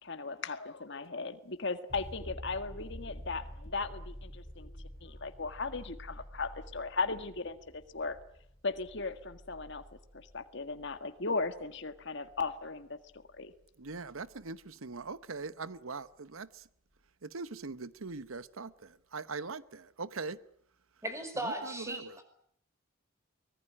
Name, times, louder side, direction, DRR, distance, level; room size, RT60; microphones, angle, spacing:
voice 1, 0.0-8.2 8.6-9.8 10.1-13.0 13.4-13.5, left 4 dB, 55° left, 1.8 m, -37 dB
sound 1, 1.9-15.4 18.1-18.2, equal, 15° left, 4.7 m, -50 dB
voice 2, 13.8-16.6 17.2-20.4 21.4-22.2, right 4 dB, 80° right, 1.0 m, -41 dB
voice 3, 21.0-22.2, right 1 dB, 15° right, 5.3 m, -37 dB
24.5 x 19.5 x 9.9 m
head